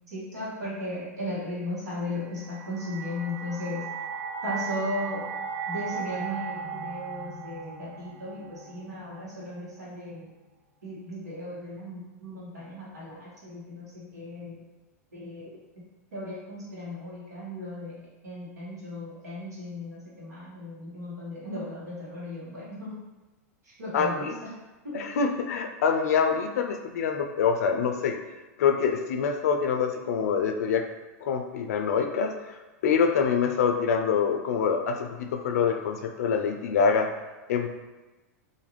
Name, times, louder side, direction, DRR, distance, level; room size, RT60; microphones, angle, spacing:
voice 1, 0.1-3.8 4.4-5.3 5.7-10.3 10.8-14.6 15.1-23.0 23.6-24.5 24.8-25.0, left 1 dB, 85° right, -7 dB, 1.3 m, -36 dB
sound 1, 2.2-9.4, right 6 dB, 40° right, 0.5 m, -37 dB
voice 2, 23.9-24.3 24.9-28.2 28.6-30.8 31.2-32.3 32.8-37.1 37.5-37.7, left 6 dB, 75° left, 4 dB, 0.4 m, -25 dB
2.6 x 2.4 x 3.0 m, 1.1 s
hypercardioid pair, 110°, 9 cm